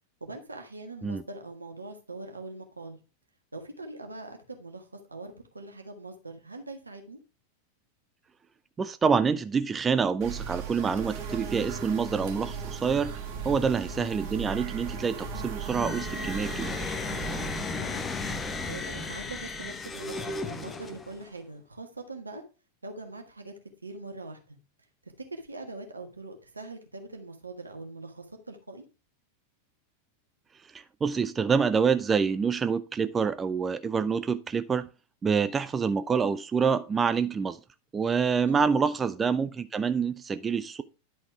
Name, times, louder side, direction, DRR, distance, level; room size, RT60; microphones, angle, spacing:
voice 1, 0.2-3.0 3.5-7.2 17.6-18.1 18.7-22.4 22.8-23.5 23.8-24.6 25.3-28.8 38.5-38.7, right 2 dB, 80° right, 1.5 m, -42 dB
voice 2, 8.8-13.2 13.4-16.7 31.0-34.9 35.2-37.6 37.9-40.8, right 6 dB, 20° right, 0.4 m, -27 dB
sound 1, 10.2-20.8, right 5 dB, 45° right, 1.8 m, -38 dB
sound 2, 15.6-21.3, left 4 dB, 15° left, 0.9 m, -35 dB
10.5 x 4.2 x 4.7 m
figure-of-eight pair, 90°, 0 cm